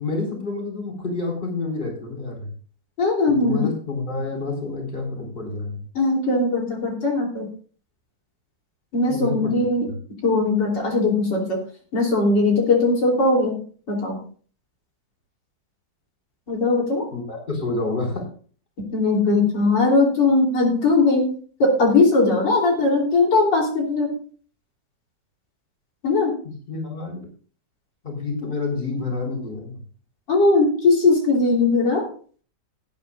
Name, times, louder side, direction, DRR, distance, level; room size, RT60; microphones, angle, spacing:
voice 1, 0.0-2.5 3.3-5.8 9.0-9.5 9.9-10.0 17.1-18.2 26.4-27.2 28.0-29.8, left 3 dB, 25° left, -1 dB, 4.1 m, -28 dB
voice 2, 3.0-3.7 6.0-7.5 8.9-9.9 10.2-11.6 11.9-13.6 13.9-14.2 16.5-17.1 18.9-21.3 21.6-24.1 26.0-26.4 30.3-32.1, left 3 dB, 75° left, -1 dB, 3.9 m, -19 dB
19.0 x 9.7 x 2.4 m, 0.43 s
omnidirectional pair, 1.9 m